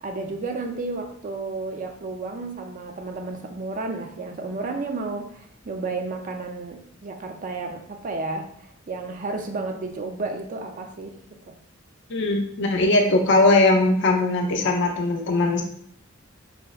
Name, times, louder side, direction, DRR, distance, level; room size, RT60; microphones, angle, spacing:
voice 1, 0.0-8.5 8.9-11.6, right 3 dB, 40° right, 4 dB, 0.4 m, -32 dB
voice 2, 12.1-15.6, left 2 dB, 60° left, 2 dB, 0.5 m, -20 dB
4.6 x 2.0 x 2.3 m, 0.66 s
head